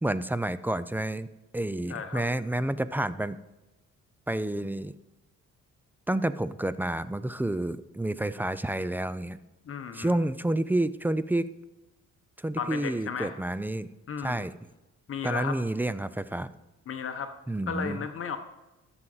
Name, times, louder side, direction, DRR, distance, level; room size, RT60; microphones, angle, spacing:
voice 1, 0.0-1.3 1.5-3.4 4.3-4.9 6.1-9.4 9.9-11.5 12.4-13.9 14.2-14.6 15.2-16.5 17.5-18.0, right 1 dB, 5° right, 15 dB, 0.3 m, -29 dB
voice 2, 1.9-2.2 9.7-10.2 12.6-13.3 14.1-14.4 15.1-15.6 16.9-17.3 17.7-18.4, left 6 dB, 45° left, 7 dB, 0.9 m, -34 dB
14.0 x 6.1 x 3.9 m, 1.0 s
cardioid pair, 90°, 30 cm